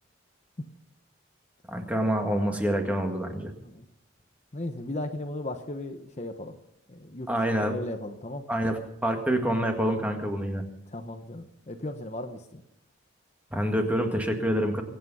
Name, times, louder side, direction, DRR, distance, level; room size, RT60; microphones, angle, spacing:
voice 1, 1.7-3.5 7.3-7.8 8.5-10.6 13.5-14.8, equal, 10° right, 3 dB, 1.8 m, -27 dB
voice 2, 4.5-6.6 6.9-7.3 7.6-8.4 10.9-12.6, left 1 dB, 35° left, 6 dB, 0.9 m, -36 dB
23.5 x 8.8 x 5.6 m, 0.81 s
head